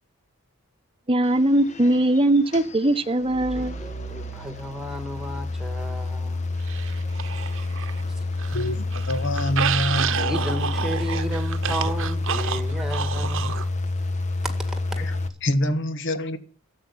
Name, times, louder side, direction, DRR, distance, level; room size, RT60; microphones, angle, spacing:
voice 1, 1.1-3.8, right 1 dB, 25° right, 1.0 m, -20 dB
sound 1, 1.2-15.3, left 2 dB, 35° left, 1.3 m, -29 dB
voice 2, 3.5-6.6 8.1-8.3 10.3-13.5 14.4-14.6 14.9-15.1, right 1 dB, ahead, 1.9 m, -33 dB
sound 2, 6.7-8.0 8.3-13.7, right 7 dB, 60° right, 0.9 m, -29 dB
voice 3, 8.5-10.5 15.4-16.4, left 1 dB, 60° left, 1.4 m, -26 dB
12.5 x 7.9 x 9.6 m
head